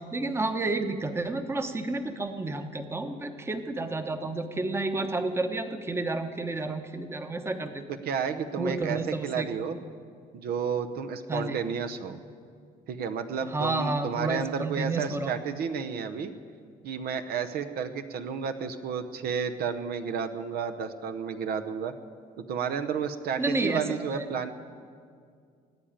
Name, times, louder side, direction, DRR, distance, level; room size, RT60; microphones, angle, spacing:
voice 1, 0.0-7.8 8.6-9.5 11.3-11.6 13.5-15.3 23.4-24.2, right 2 dB, 15° right, 7 dB, 1.0 m, -30 dB
voice 2, 7.9-9.8 10.3-12.2 12.9-16.3 16.8-21.9 22.4-24.5, right 6 dB, 65° right, 7 dB, 0.9 m, -31 dB
17.5 x 8.9 x 8.7 m, 2.2 s
cardioid pair, 110°, 17 cm